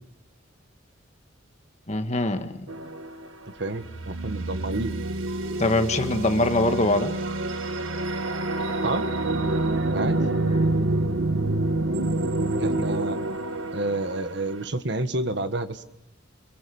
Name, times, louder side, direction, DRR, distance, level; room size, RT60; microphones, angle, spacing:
voice 1, 1.9-2.7 5.6-7.1 10.2-10.3, left 2 dB, 35° left, 7 dB, 1.7 m, -23 dB
sound 1, 2.7-3.3 3.8-14.4, right 2 dB, 85° right, 1.9 m, -27 dB
voice 2, 3.6-4.9 8.8-9.0 9.9-10.2 12.6-13.2 13.7-15.8, right 2 dB, 60° right, 10 dB, 1.6 m, -29 dB
29.0 x 23.0 x 7.2 m, 0.84 s
head